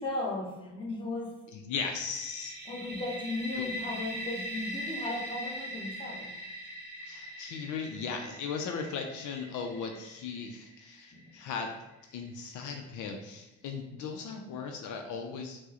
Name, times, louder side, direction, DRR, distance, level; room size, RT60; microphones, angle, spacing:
voice 1, 0.0-1.3 2.6-6.3 11.1-11.4, left 2 dB, 15° left, -4 dB, 1.1 m, -36 dB
voice 2, 1.5-2.5 3.5-3.6 7.0-11.7 12.1-15.6, left 5 dB, 80° left, 4 dB, 0.5 m, -37 dB
sound 1, 2.0-11.7, equal, 35° right, 0.8 m, -41 dB
4.4 x 2.1 x 2.9 m, 1.0 s
cardioid pair, 90°, 30 cm